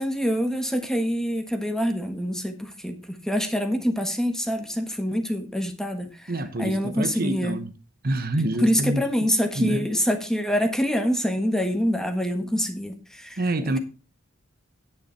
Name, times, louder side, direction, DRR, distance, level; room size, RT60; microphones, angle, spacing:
voice 1, 0.0-6.1 6.6-7.6 8.6-13.4, equal, 5° left, 1.4 m, -25 dB
voice 2, 6.3-7.8 8.0-9.0 9.5-9.9 13.4-13.8, right 2 dB, 45° right, 1.1 m, -27 dB
9.7 x 9.3 x 4.3 m
head